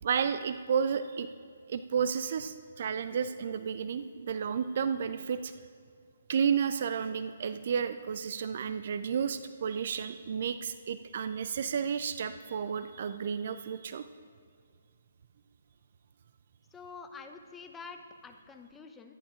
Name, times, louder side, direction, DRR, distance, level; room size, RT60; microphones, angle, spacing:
voice 1, 0.0-1.3 1.7-5.5 6.3-14.0, right 7 dB, 45° right, 12 dB, 0.5 m, -32 dB
voice 2, 16.7-19.1, left 4 dB, 10° left, 5 dB, 0.9 m, -47 dB
23.5 x 11.0 x 2.5 m, 2.2 s
figure-of-eight pair, 130°, 0 cm